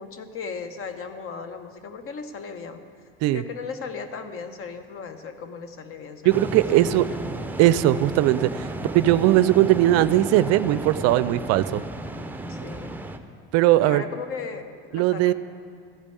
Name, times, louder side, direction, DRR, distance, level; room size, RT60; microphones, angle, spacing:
voice 1, 0.0-2.8 3.3-6.4 6.7-6.8 12.5-13.0 13.8-15.3, left 5 dB, 45° left, 9 dB, 1.0 m, -36 dB
voice 2, 6.2-7.1 7.6-8.7 8.9-11.8 13.5-14.0 14.9-15.3, right 14 dB, 60° right, 15 dB, 0.4 m, -19 dB
sound 1, 6.3-13.2, right 1 dB, 5° right, 0.7 m, -33 dB
14.5 x 5.1 x 8.4 m, 2.2 s
hypercardioid pair, 80°, 30 cm